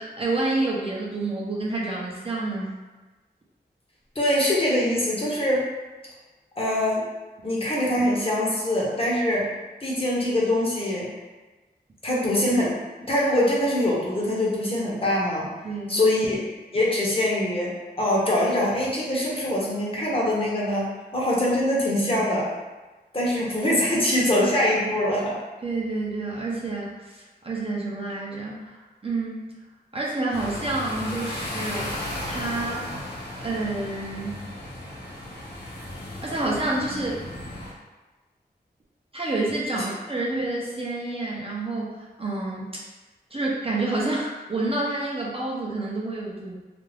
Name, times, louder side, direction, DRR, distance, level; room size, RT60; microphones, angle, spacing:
voice 1, 0.0-2.7 15.6-16.2 25.6-29.5 29.9-32.0 32.3-32.9 33.4-34.4 36.2-37.2 39.1-42.8 43.3-46.6, right 2 dB, 35° right, -4 dB, 0.5 m, -29 dB
voice 2, 4.2-5.7 6.6-7.0 7.4-9.5 9.8-11.1 12.0-12.7 13.0-15.5 15.9-16.4 16.7-17.7 18.0-20.9 21.1-22.5 23.1-25.3 39.7-39.9, left 1 dB, 35° left, -5 dB, 0.7 m, -23 dB
sound 1, 30.3-37.7, left 1 dB, 80° left, 0.8 m, -35 dB
2.4 x 2.3 x 3.2 m, 1.2 s
wide cardioid pair, 90°, 17 cm